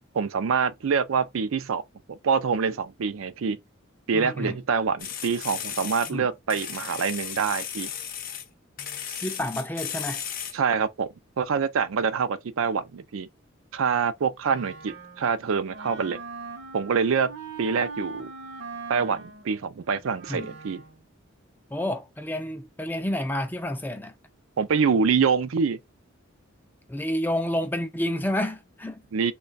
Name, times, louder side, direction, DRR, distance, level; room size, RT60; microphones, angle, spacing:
voice 1, 0.1-1.8 2.1-3.6 4.1-7.9 10.5-11.1 11.4-13.3 13.7-16.2 16.7-17.3 17.6-18.3 18.9-20.8 24.6-25.8 29.1-29.3, right 6 dB, 70° right, 0.4 m, -25 dB
voice 2, 4.1-4.6 6.1-6.3 9.2-10.2 20.3-20.5 21.7-24.1 26.9-29.0, left 1 dB, 10° left, 0.3 m, -29 dB
sound 1, 5.0-6.1 6.5-8.4 8.8-10.6, left 9 dB, 40° left, 0.6 m, -35 dB
Wind instrument woodwind instrument, 14.5-21.0, right 4 dB, 55° right, 0.8 m, -41 dB
3.2 x 2.3 x 3.9 m
head